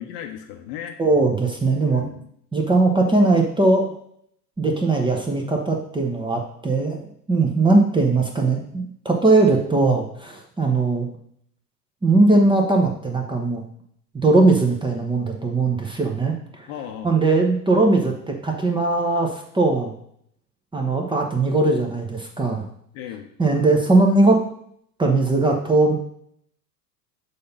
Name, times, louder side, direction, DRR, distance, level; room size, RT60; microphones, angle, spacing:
voice 1, 0.0-1.0 1.8-2.3 16.7-17.2 22.9-23.3, left 9 dB, 45° left, 6 dB, 0.9 m, -36 dB
voice 2, 1.0-2.1 2.5-3.9 4.6-11.1 12.0-13.6 14.1-16.3 17.0-19.9 20.7-22.6 23.4-24.4 25.0-26.0, right 3 dB, 10° right, 2 dB, 0.9 m, -19 dB
6.6 x 2.8 x 5.5 m, 0.67 s
figure-of-eight pair, 80°, 50 cm